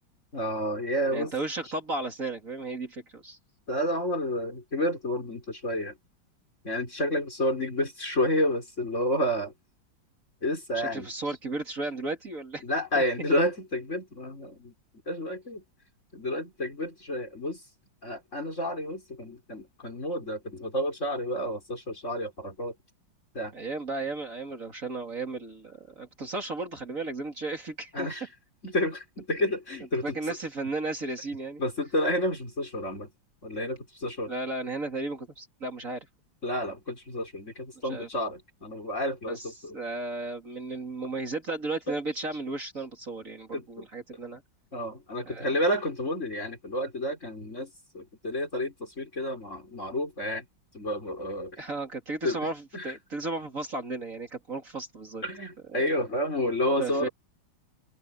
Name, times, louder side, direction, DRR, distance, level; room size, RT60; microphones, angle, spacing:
voice 1, 0.3-1.3 1.6-1.7 3.7-5.9 6.6-9.5 10.4-11.4 12.6-14.7 15.1-15.6 16.1-17.6 18.0-22.7 23.3-23.5 27.9-28.3 28.6-30.4 30.6-30.7 31.6-33.1 33.4-34.3 36.4-39.8 41.9-42.0 43.5-43.9 44.7-47.7 47.9-50.5 50.7-51.6 52.2-53.0 55.2-57.1, left 1 dB, 35° left, 5.4 m, -30 dB
voice 2, 1.1-3.4 10.7-12.6 12.9-13.0 23.5-28.1 30.0-31.6 34.3-36.1 37.8-38.1 39.3-39.5 39.7-44.4 45.2-45.6 51.6-55.2 55.7-55.8 56.8-57.1, right 3 dB, 40° right, 3.3 m, -34 dB
omnidirectional pair, 2.1 m